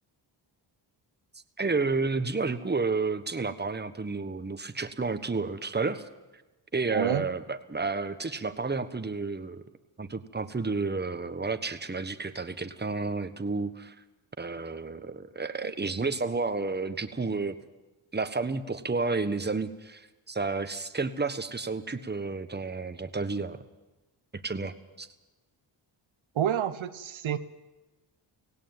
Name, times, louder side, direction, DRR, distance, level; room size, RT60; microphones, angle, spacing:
voice 1, 1.6-6.0 6.7-7.4 7.7-9.6 10.0-13.9 14.4-17.6 18.1-23.6 24.3-25.1, right 3 dB, 20° right, 11 dB, 1.4 m, -31 dB
voice 2, 6.9-7.3 26.3-27.4, right 10 dB, 70° right, 11 dB, 1.0 m, -28 dB
17.0 x 17.0 x 9.1 m, 1.1 s
cardioid pair, 55°, 49 cm